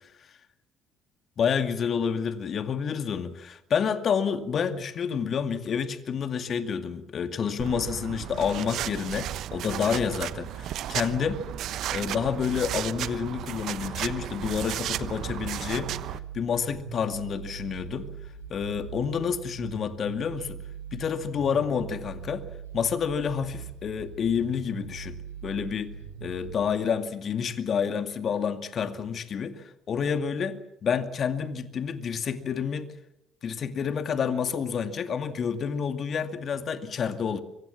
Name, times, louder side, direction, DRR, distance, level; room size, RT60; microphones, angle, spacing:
voice 1, 1.4-15.9 16.3-18.1 18.5-20.6 20.9-22.5 22.7-25.9 26.2-32.9 33.4-37.4, left 7 dB, 45° left, 9 dB, 2.3 m, -29 dB
sound 1, 7.6-16.2, right 12 dB, 60° right, 1.0 m, -34 dB
sound 2, 15.7-26.6, right 7 dB, 85° right, 7.0 m, -41 dB
24.5 x 24.0 x 7.5 m, 0.85 s
hypercardioid pair, 55°, 0 cm